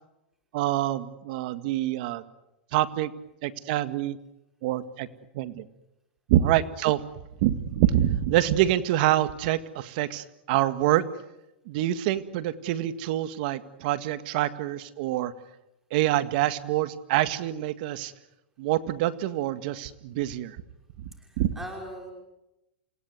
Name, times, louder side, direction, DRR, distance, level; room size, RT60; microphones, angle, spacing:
voice 1, 0.5-2.2 2.7-3.1 3.4-4.2 4.6-5.1 5.3-5.6 6.3-7.0 7.4-11.0 11.7-15.3 15.9-18.1 18.6-20.6 21.4-21.5, right 13 dB, 55° right, 12 dB, 1.9 m, -26 dB
voice 2, 21.2-22.1, right 1 dB, 5° right, 1 dB, 5.8 m, -40 dB
29.0 x 17.5 x 9.5 m, 0.91 s
hypercardioid pair, 135°, 6 cm